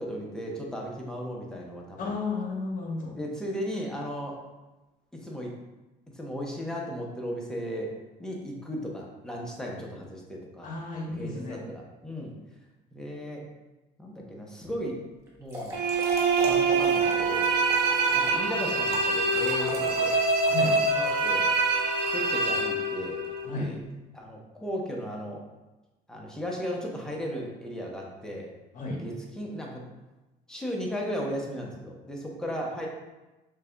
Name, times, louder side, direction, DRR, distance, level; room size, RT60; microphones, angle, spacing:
voice 1, 0.0-2.2 3.2-4.4 5.2-5.5 6.1-7.9 8.2-10.7 11.1-12.3 12.9-13.5 14.0-15.0 15.4-15.8 16.5-17.5 18.1-20.2 20.9-21.5 22.1-23.2 23.5-23.8 24.1-25.4 26.1-28.5 29.0-29.9 30.5-32.9, equal, 5° left, -2 dB, 0.8 m, -36 dB
voice 2, 2.0-3.2 10.6-11.6 20.5-20.8 23.4-23.7 28.7-29.0, left 3 dB, 50° left, -2 dB, 1.2 m, -33 dB
Trickle dribble / Fill (with liquid), 15.3-22.7, equal, 15° right, 1.0 m, -40 dB
sound 1, 15.7-23.5, right 3 dB, 85° right, 0.6 m, -25 dB
6.5 x 2.4 x 2.2 m, 1.1 s
cardioid pair, 110°, 17 cm